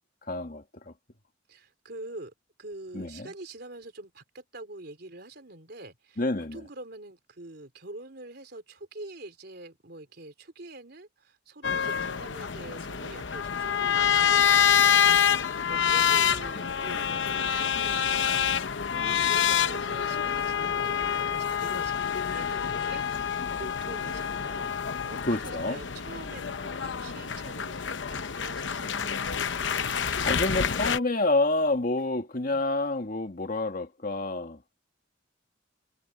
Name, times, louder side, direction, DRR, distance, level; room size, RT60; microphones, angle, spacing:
voice 1, 0.3-0.9 2.9-3.3 6.2-6.6 25.2-25.8 29.7-34.6, left 2 dB, 45° left, 2.0 m, -28 dB
voice 2, 1.5-2.3 2.6-6.2 6.5-18.7 18.9-24.7 25.0-29.2 32.4-32.6, right 2 dB, 60° right, 3.6 m, -45 dB
sound 1, 11.6-31.0, left 8 dB, 70° left, 0.8 m, -27 dB
head